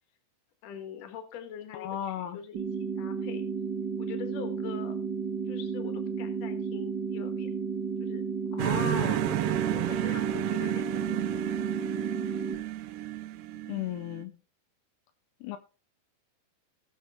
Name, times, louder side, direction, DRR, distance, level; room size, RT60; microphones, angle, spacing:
voice 1, 0.6-3.4 4.0-5.0 5.5-7.5 8.0-8.2 8.7-11.7, left 7 dB, 50° left, 2.3 m, -44 dB
voice 2, 1.7-2.4 8.5-9.3 13.7-14.4 15.4-15.6, left 11 dB, 80° left, 2.6 m, -35 dB
sound 1, 2.5-12.5, right 5 dB, 60° right, 1.1 m, -33 dB
sound 2, 8.6-14.2, right 14 dB, 85° right, 3.0 m, -32 dB
18.5 x 6.7 x 3.6 m
omnidirectional pair, 4.9 m